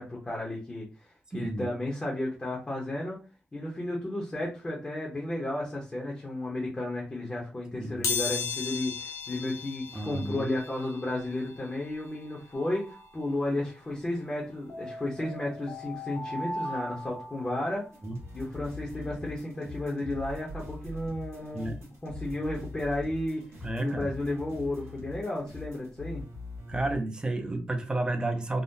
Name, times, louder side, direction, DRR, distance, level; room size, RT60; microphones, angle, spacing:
voice 1, 0.0-3.2 3.5-17.9 18.3-21.7 22.0-23.5 23.8-26.2, left 1 dB, 20° left, -3 dB, 0.7 m, -33 dB
voice 2, 1.3-1.7 7.7-8.0 9.9-10.5 18.0-18.2 21.5-21.8 23.6-24.1 26.7-28.6, right 2 dB, 20° right, 6 dB, 0.4 m, -31 dB
sound 1, 8.0-18.7 19.2-19.3 20.4-20.5 20.8-22.9 23.3-25.9 26.2-26.4 26.7-26.8, left 6 dB, 80° left, 0.5 m, -39 dB
sound 2, 12.5-13.6 14.7-17.9, equal, 55° left, 0.8 m, -40 dB
sound 3, 17.9-27.0, left 2 dB, 75° right, 1.3 m, -43 dB
3.6 x 2.1 x 2.6 m, 0.33 s
wide cardioid pair, 160°, 5 cm